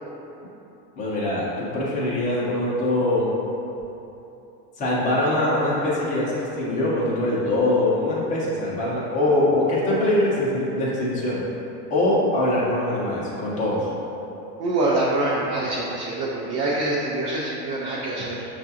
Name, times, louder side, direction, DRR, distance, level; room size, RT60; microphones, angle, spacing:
voice 1, 1.0-3.3 4.8-11.4 11.9-13.9, left 1 dB, 15° left, -7 dB, 0.7 m, -23 dB
voice 2, 14.6-18.5, right 2 dB, 35° right, -6 dB, 0.4 m, -25 dB
5.8 x 2.4 x 2.7 m, 3.0 s
supercardioid pair, 135°, 48 cm